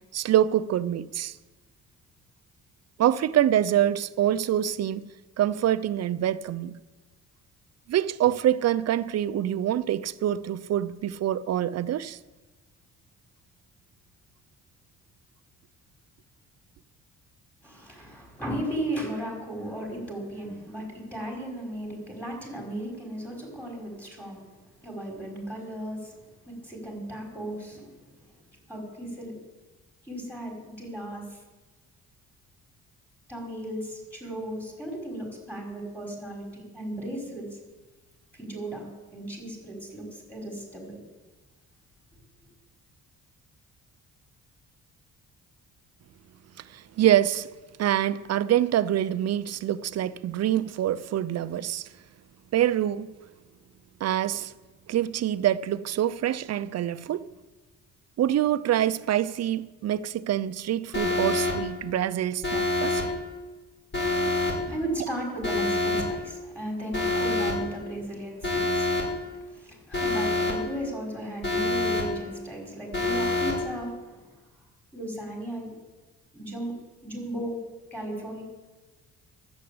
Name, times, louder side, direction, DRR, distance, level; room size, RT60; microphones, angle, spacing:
voice 1, 0.1-1.4 3.0-5.1 5.4-6.8 7.9-12.2 46.7-47.5 47.8-51.9 52.5-53.1 54.0-54.5 54.9-57.3 58.2-63.0 64.3-64.4, right 11 dB, 55° right, 0.6 m, -25 dB
voice 2, 17.6-24.4 24.8-26.2 26.5-28.1 28.7-29.3 30.0-31.2 33.3-37.6 38.4-38.9 39.1-41.0 64.4-74.3 74.9-75.7 76.3-76.8 77.0-77.6 77.9-78.4, right 1 dB, 5° left, 5.5 m, -36 dB
Alarm, 60.9-61.5 62.4-63.0 63.9-64.5 65.4-66.0 66.9-67.5 68.4-69.0 69.9-70.5 71.4-72.0 72.9-73.5, left 2 dB, 40° left, 5.0 m, -26 dB
11.0 x 8.3 x 8.5 m
cardioid pair, 90°, 30 cm